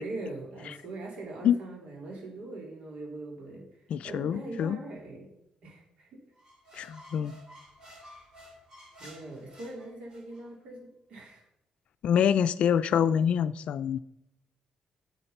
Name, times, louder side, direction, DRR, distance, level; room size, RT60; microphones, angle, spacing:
voice 1, 0.0-3.7 4.0-5.3 5.6-6.2 6.7-6.8 9.0-11.4, right 2 dB, 65° right, 3.6 m, -41 dB
voice 2, 3.9-4.8 6.7-7.3 12.0-14.0, left 8 dB, 65° left, 0.4 m, -26 dB
sound 1, 6.4-10.4, equal, 30° right, 3.5 m, -52 dB
10.0 x 7.2 x 5.5 m
cardioid pair, 150°, 2 cm